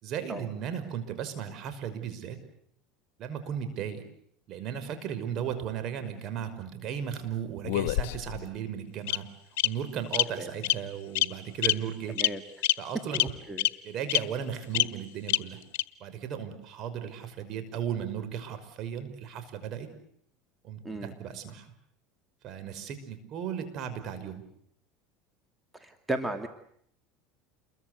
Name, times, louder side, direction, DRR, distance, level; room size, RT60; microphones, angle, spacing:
voice 1, 0.0-2.4 3.2-4.0 4.5-9.3 9.6-12.2 12.8-13.3 13.8-15.6 16.0-19.9 20.6-21.7 22.4-24.4, right 8 dB, 50° right, 10 dB, 5.8 m, -36 dB
Bird vocalization bird call bird song, 7.6-8.4 9.1-9.2 9.6-9.7 10.1-10.2 10.6-10.8 11.1-11.3 11.6-11.7 12.2-12.3 12.6-12.7 13.1-13.2 13.6-13.7 14.1-14.2 14.7-14.8 15.3-15.4 15.7-15.8, left 16 dB, 75° left, 1.4 m, -24 dB
voice 2, 13.1-13.7 20.8-21.1 25.8-26.5, right 1 dB, 10° right, 6 dB, 2.5 m, -35 dB
29.0 x 22.5 x 8.2 m, 0.68 s
supercardioid pair, 105°, 0 cm